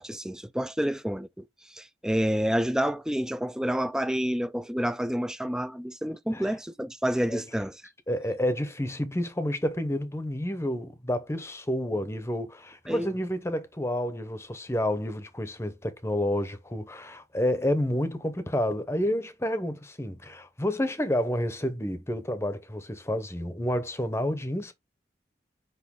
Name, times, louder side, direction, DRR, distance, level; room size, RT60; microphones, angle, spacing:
voice 1, 0.0-7.7 12.9-13.2, equal, 5° right, 0.4 m, -29 dB
voice 2, 8.1-24.7, left 1 dB, 15° left, 0.8 m, -29 dB
6.1 x 5.5 x 3.7 m
head